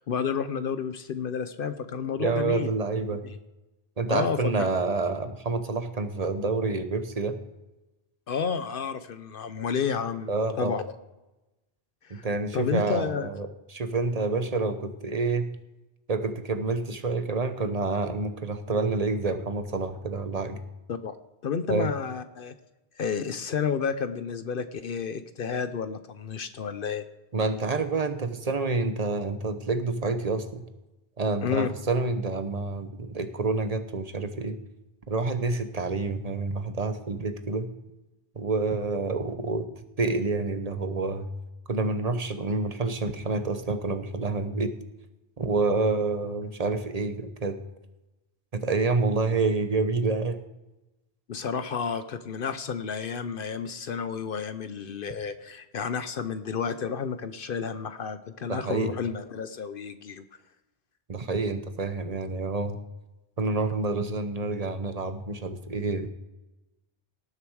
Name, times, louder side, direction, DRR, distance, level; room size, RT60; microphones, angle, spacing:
voice 1, 0.0-2.7 3.2-3.4 4.1-4.7 8.3-10.3 10.6-10.8 12.0-12.3 12.5-13.3 20.9-21.1 21.4-22.5 23.0-27.0 31.4-31.7 51.3-60.2, left 6 dB, 65° left, 11 dB, 0.9 m, -31 dB
voice 2, 2.2-3.2 4.0-7.4 10.3-10.7 12.1-15.5 16.1-20.6 21.7-21.9 27.3-30.6 31.2-34.6 35.1-37.7 38.4-39.7 40.0-41.3 41.7-44.7 45.4-47.6 48.5-50.4 58.5-58.9 61.1-62.8 63.4-66.1, right 3 dB, 40° right, 9 dB, 1.0 m, -28 dB
18.5 x 6.9 x 4.8 m, 1.0 s
omnidirectional pair, 1.0 m